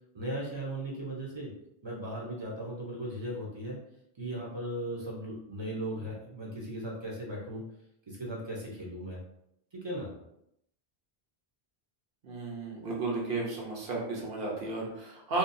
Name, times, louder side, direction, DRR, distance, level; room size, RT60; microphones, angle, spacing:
voice 1, 0.1-1.5 1.8-3.8 4.2-7.6 8.1-9.2 9.7-10.1, right 1 dB, 35° right, -3 dB, 0.6 m, -37 dB
voice 2, 12.2-15.4, right 3 dB, 70° right, -3 dB, 1.0 m, -33 dB
2.7 x 2.3 x 2.5 m, 0.76 s
omnidirectional pair, 1.0 m